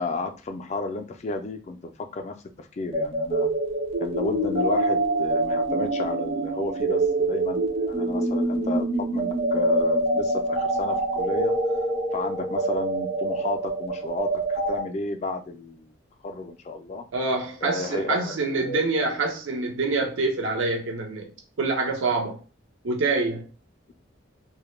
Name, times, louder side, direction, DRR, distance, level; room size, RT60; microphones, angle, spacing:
voice 1, 0.0-3.5 4.0-8.8 9.1-11.5 12.1-15.9 16.2-17.0 17.6-18.3 18.6-18.8, left 2 dB, 35° left, 0.3 m, -32 dB
sound 1, 2.9-14.8, right 2 dB, 30° right, 0.4 m, -25 dB
voice 2, 17.1-21.3 21.6-22.4 22.8-23.4, right 3 dB, 85° right, 0.5 m, -26 dB
2.1 x 2.1 x 3.0 m
head